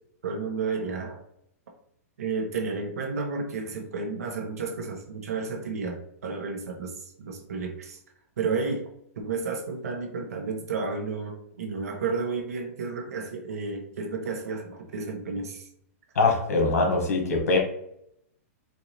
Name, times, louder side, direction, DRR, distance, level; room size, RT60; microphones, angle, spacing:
voice 1, 0.2-1.2 2.2-8.0 8.4-8.9 9.2-15.7, right 4 dB, 80° right, 2 dB, 1.1 m, -32 dB
voice 2, 16.1-17.6, left 3 dB, 85° left, 1 dB, 1.6 m, -22 dB
4.5 x 2.6 x 3.1 m, 0.74 s
hypercardioid pair, 180°, 8 cm